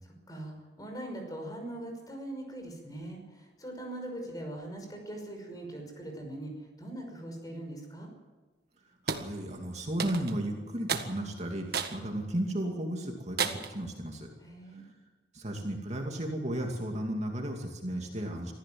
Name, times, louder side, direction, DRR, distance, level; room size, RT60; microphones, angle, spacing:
voice 1, 0.3-8.1 14.4-14.8, right 1 dB, 20° left, 3 dB, 5.8 m, -41 dB
voice 2, 9.0-14.3 14.7-14.9 15.3-18.5, right 1 dB, 35° right, 1 dB, 2.5 m, -34 dB
sound 1, 9.1-9.3 10.0-10.4 10.9-11.1 11.7-12.0 12.5-12.6 13.4-13.8, right 6 dB, 55° right, 1.6 m, -32 dB
25.0 x 15.5 x 7.8 m, 1.2 s
head